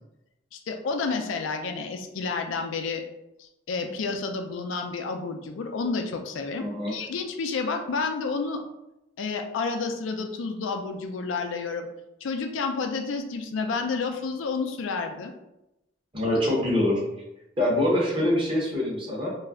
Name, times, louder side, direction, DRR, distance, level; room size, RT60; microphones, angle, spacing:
voice 1, 0.5-3.0 3.4-8.6 9.2-11.9 12.2-15.3, left 4 dB, 85° left, 5 dB, 0.4 m, -30 dB
voice 2, 6.6-7.0 16.1-17.0 17.6-19.3, left 1 dB, 25° right, -5 dB, 0.8 m, -24 dB
2.3 x 2.1 x 3.5 m, 0.90 s
head